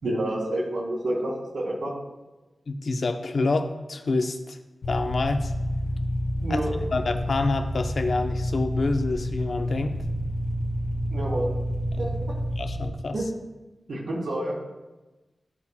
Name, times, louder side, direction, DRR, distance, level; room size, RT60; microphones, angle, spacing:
voice 1, 0.0-1.9 6.4-6.7 11.1-11.5 12.0-12.1 13.1-13.3 13.9-14.6, right 1 dB, 75° right, -3 dB, 2.0 m, -28 dB
voice 2, 2.7-4.6 4.9-5.5 6.5-9.9 12.6-13.2, left 3 dB, 65° left, 6 dB, 0.6 m, -27 dB
sound 1, 4.8-12.9, equal, 90° left, 0.9 m, -29 dB
12.5 x 4.2 x 2.2 m, 1.1 s
wide cardioid pair, 80°, 0 cm